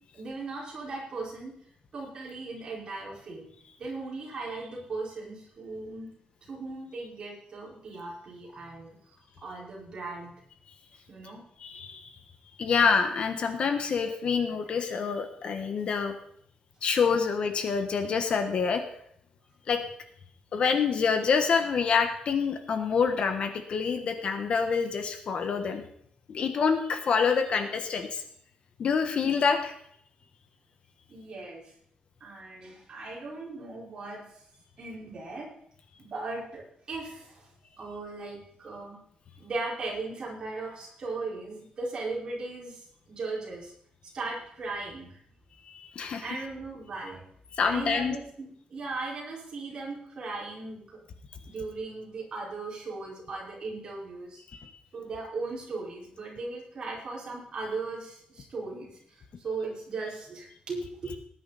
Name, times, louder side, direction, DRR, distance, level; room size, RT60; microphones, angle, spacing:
voice 1, 0.1-1.5 1.9-3.5 3.8-6.1 6.5-10.3 11.1-11.4 31.1-31.7 32.2-34.4 34.8-35.5 36.0-37.5 37.8-39.0 39.4-43.7 44.1-45.2 46.2-47.2 47.6-51.0 51.5-54.4 54.9-61.2, right 3 dB, 35° right, -4 dB, 5.1 m, -38 dB
voice 2, 11.6-12.1 12.6-16.1 16.8-18.8 19.7-19.8 20.5-25.8 26.3-28.2 28.8-29.7 45.7-46.2 47.6-48.1 54.5-54.7, left 5 dB, 45° left, 7 dB, 1.4 m, -26 dB
19.0 x 10.0 x 4.2 m, 0.67 s
wide cardioid pair, 175°, 2 cm